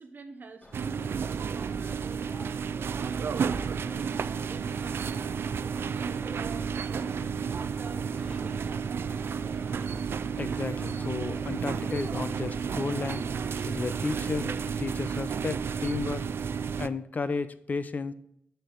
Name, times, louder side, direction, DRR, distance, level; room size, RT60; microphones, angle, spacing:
voice 1, 0.0-8.9, right 3 dB, 55° right, 3 dB, 0.8 m, -47 dB
sound 1, 0.6-15.2, left 1 dB, 20° left, 1.7 m, -49 dB
sound 2, 0.7-16.9, right 6 dB, 80° right, 0.4 m, -32 dB
voice 2, 10.4-13.2 13.7-16.3 16.8-18.1, left 4 dB, 45° left, 13 dB, 0.6 m, -33 dB
13.0 x 4.5 x 4.0 m, 0.76 s
wide cardioid pair, 140°, 4 cm